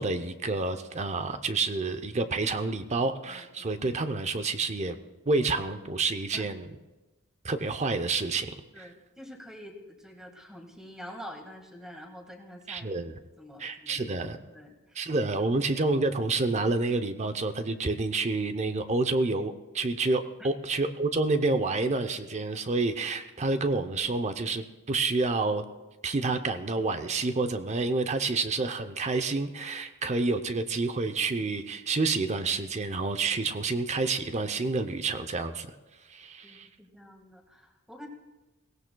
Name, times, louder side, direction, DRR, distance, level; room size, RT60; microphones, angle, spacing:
voice 1, 0.0-5.0 5.3-6.7 7.4-8.5 8.8-8.9 12.7-13.1 13.6-14.4 15.0-25.6 26.0-35.7 36.1-36.7, right 3 dB, 35° right, 9 dB, 0.7 m, -28 dB
voice 2, 3.3-3.8 6.3-6.5 8.7-13.0 13.4-15.0 36.4-38.1, equal, 5° right, 2 dB, 1.8 m, -47 dB
22.5 x 17.5 x 2.3 m, 1.1 s
head